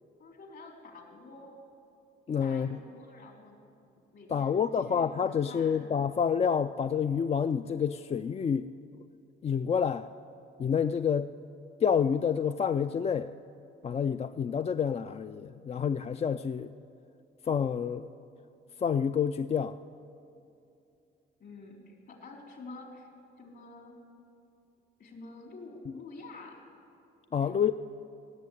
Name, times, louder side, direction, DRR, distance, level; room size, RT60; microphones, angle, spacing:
voice 1, 0.2-1.6 2.4-3.6 4.1-5.1 5.4-5.8 21.4-23.1 23.4-23.9 25.0-26.6 27.4-27.6, left 3 dB, 60° left, 1 dB, 3.7 m, -48 dB
voice 2, 2.3-2.8 4.3-8.7 9.4-10.1 10.6-11.3 11.8-13.3 13.8-16.7 17.5-18.1 18.8-19.8 27.3-27.7, left 7 dB, 30° left, 11 dB, 0.4 m, -28 dB
17.5 x 7.7 x 10.0 m, 2.7 s
cardioid pair, 90°, 20 cm